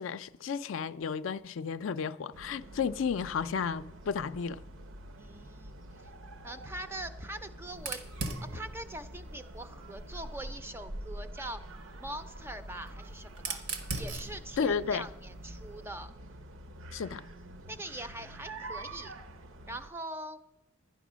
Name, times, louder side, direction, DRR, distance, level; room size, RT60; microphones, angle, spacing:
voice 1, 0.0-4.6 14.6-15.1 16.9-17.2, left 6 dB, 70° left, 0.4 m, -33 dB
sound 1, 2.3-19.9, right 1 dB, 70° right, 0.7 m, -46 dB
voice 2, 5.2-6.1 6.4-11.6 12.0-13.6 14.0-16.2 17.7-19.1 19.7-20.4, right 1 dB, 10° right, 0.4 m, -43 dB
Fire, 7.7-10.5 11.6-15.9, right 3 dB, 90° right, 1.2 m, -42 dB
11.5 x 10.0 x 6.1 m
head